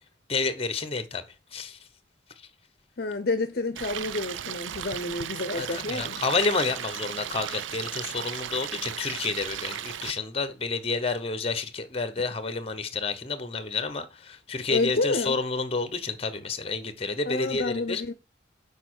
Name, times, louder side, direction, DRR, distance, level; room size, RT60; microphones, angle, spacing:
voice 1, 0.3-1.2 1.5-1.8 5.6-18.0, left 3 dB, 30° left, 1.0 m, -30 dB
voice 2, 3.0-6.2 14.7-15.4 17.3-18.1, left 3 dB, 55° left, 0.7 m, -29 dB
Stream, 3.8-10.1, right 10 dB, 85° right, 0.5 m, -36 dB
6.8 x 5.1 x 6.3 m
head